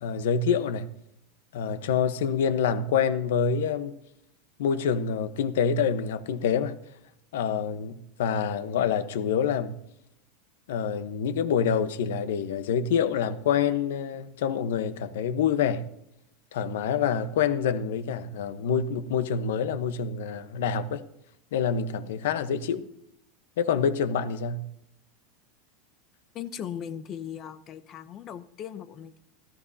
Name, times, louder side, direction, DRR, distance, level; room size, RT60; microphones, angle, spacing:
voice 1, 0.0-0.9 1.5-4.0 4.6-6.7 7.3-9.8 10.7-15.8 16.5-21.0 21.5-22.9 23.6-24.7, left 7 dB, 85° left, 1.0 m, -26 dB
voice 2, 26.3-29.2, left 9 dB, 25° left, 0.7 m, -38 dB
17.5 x 13.5 x 2.8 m
supercardioid pair, 180°, 0 cm